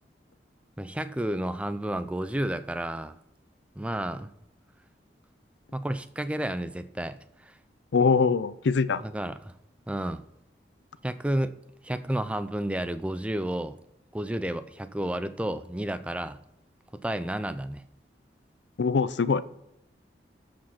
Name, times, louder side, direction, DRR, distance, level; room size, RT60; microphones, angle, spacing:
voice 1, 0.8-3.2 3.8-4.3 5.7-7.6 9.0-9.5 9.9-10.2 11.0-11.5 11.8-13.7 14.1-16.4 16.9-17.8, right 1 dB, 5° right, 12 dB, 0.4 m, -31 dB
voice 2, 7.9-9.0 18.8-19.4, left 5 dB, 80° left, 15 dB, 0.5 m, -23 dB
13.0 x 5.2 x 5.7 m, 0.85 s
head